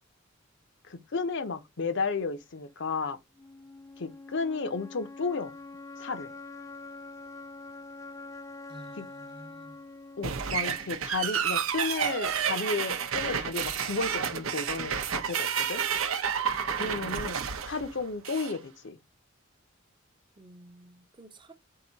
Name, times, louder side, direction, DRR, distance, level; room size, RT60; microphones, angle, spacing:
voice 1, 0.9-3.2 4.0-5.6 6.0-6.3 9.0-9.1 10.2-15.8 16.8-17.4 17.6-19.0, left 4 dB, 60° left, 0.7 m, -33 dB
sound 1, 3.4-11.3, left 3 dB, 15° left, 0.4 m, -45 dB
voice 2, 8.7-9.8 16.8-17.3 20.4-21.5, right 1 dB, 25° right, 0.7 m, -51 dB
sound 2, 10.2-18.6, right 7 dB, 85° right, 0.7 m, -30 dB
4.8 x 2.7 x 3.9 m
head